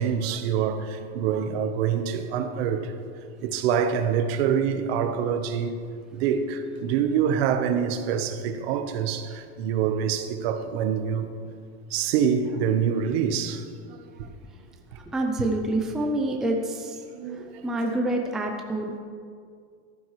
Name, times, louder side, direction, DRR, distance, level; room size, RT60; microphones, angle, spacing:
voice 1, 0.0-2.9 3.4-5.8 6.1-11.3 11.9-14.3 14.9-15.0 17.1-17.6, right 7 dB, 65° right, 1.0 m, -26 dB
voice 2, 15.1-17.0 17.3-18.9, right 1 dB, ahead, 0.4 m, -27 dB
13.5 x 12.0 x 3.2 m
supercardioid pair, 165°, 33 cm